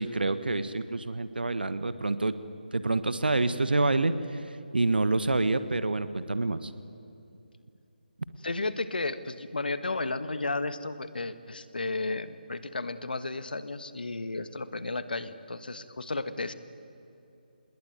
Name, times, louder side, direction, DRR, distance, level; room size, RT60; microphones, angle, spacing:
voice 1, 0.0-2.3 2.7-6.7, right 2 dB, 65° right, 12 dB, 1.5 m, -27 dB
voice 2, 8.4-16.5, left 3 dB, 65° left, 12 dB, 1.6 m, -33 dB
27.0 x 21.0 x 9.3 m, 2.8 s
figure-of-eight pair, 150°, 5 cm